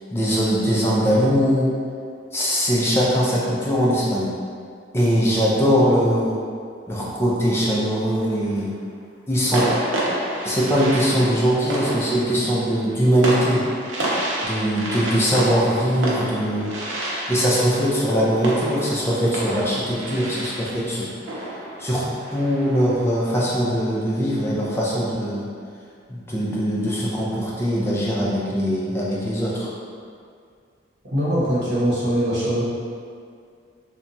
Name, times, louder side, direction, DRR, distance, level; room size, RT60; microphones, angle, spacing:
voice 1, 0.1-1.7 2.3-4.3 4.9-6.4 6.9-8.7 9.3-9.7 10.4-13.7 14.4-16.7 17.3-21.1 21.8-25.5 26.1-29.7, equal, 15° left, -6 dB, 0.4 m, -21 dB
sound 1, 8.0-8.6 9.5-22.9, right 1 dB, 85° right, 0.5 m, -29 dB
voice 2, 31.0-32.6, equal, 65° right, -9 dB, 0.9 m, -22 dB
2.9 x 2.2 x 2.6 m, 2.2 s
head